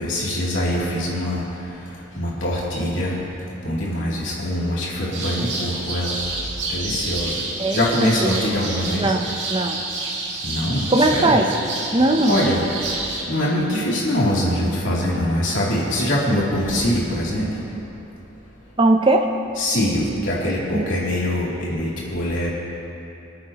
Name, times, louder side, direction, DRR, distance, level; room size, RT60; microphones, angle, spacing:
voice 1, 0.0-1.4 2.1-3.1 3.6-6.2 6.7-7.3 7.7-9.1 10.4-11.4 12.2-12.6 13.3-17.5 19.6-22.5, left 1 dB, 80° left, -6 dB, 3.1 m, -23 dB
sound 1, 5.1-13.2, right 3 dB, 70° right, 2.5 m, -29 dB
voice 2, 8.9-9.8 10.9-11.4 11.9-12.5 18.8-19.3 20.7-20.9, right 2 dB, 25° right, 4 dB, 0.8 m, -19 dB
26.5 x 8.9 x 3.0 m, 3.0 s
head